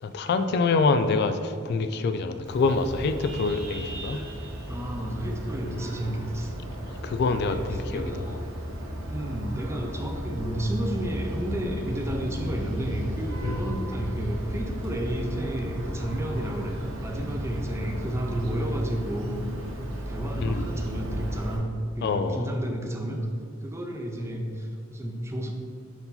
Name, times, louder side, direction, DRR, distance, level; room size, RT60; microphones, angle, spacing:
voice 1, 0.0-4.2 5.7-5.8 6.9-8.1 13.4-13.7 20.4-20.7 22.0-22.5, left 4 dB, 55° left, 10 dB, 0.3 m, -26 dB
Vehicle horn car horn honking, 2.4-21.6, equal, 75° right, 1.3 m, -34 dB
voice 2, 4.7-6.5 7.5-8.4 9.1-19.4 20.1-21.7 22.0-23.2 23.6-25.5, right 1 dB, 15° right, 2 dB, 0.6 m, -31 dB
4.6 x 4.0 x 5.6 m, 2.3 s
head